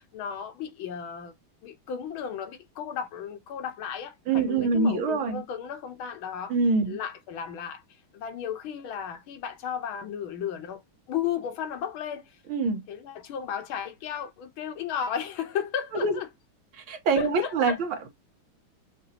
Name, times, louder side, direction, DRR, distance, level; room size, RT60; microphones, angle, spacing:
voice 1, 0.0-1.3 1.6-6.6 6.9-7.8 8.1-10.8 11.1-12.4 12.9-16.3 17.2-17.8, left 8 dB, 80° left, 1.7 m, -34 dB
voice 2, 4.3-5.4 6.5-7.0 12.5-12.8 16.0-16.1 16.7-18.1, right 4 dB, 80° right, 2.1 m, -25 dB
6.6 x 2.5 x 2.8 m
omnidirectional pair, 2.2 m